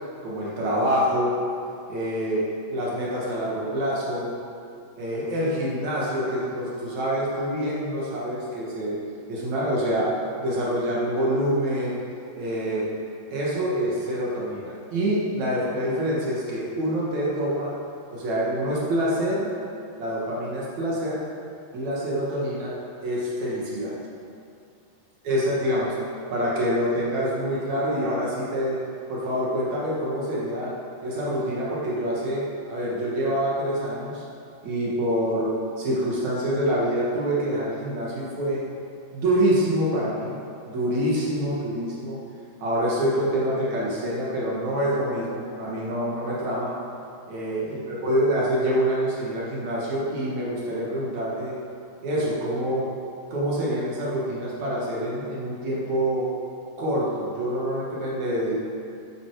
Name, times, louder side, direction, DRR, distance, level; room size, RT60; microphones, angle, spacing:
voice 1, 0.2-1.4 1.9-4.3 5.0-9.0 9.3-10.1 10.4-12.0 12.3-12.9 13.3-17.7 18.1-19.5 20.0-21.2 21.7-22.8 23.0-24.0 25.2-25.9 26.3-28.8 29.1-30.7 31.0-34.2 34.6-38.6 39.1-40.4 40.6-42.2 42.6-46.7 47.3-51.5 52.0-52.9 53.3-56.3 56.8-58.6, equal, 55° right, -6 dB, 3.0 m, -26 dB
11.5 x 9.3 x 4.9 m, 2.5 s
omnidirectional pair, 4.2 m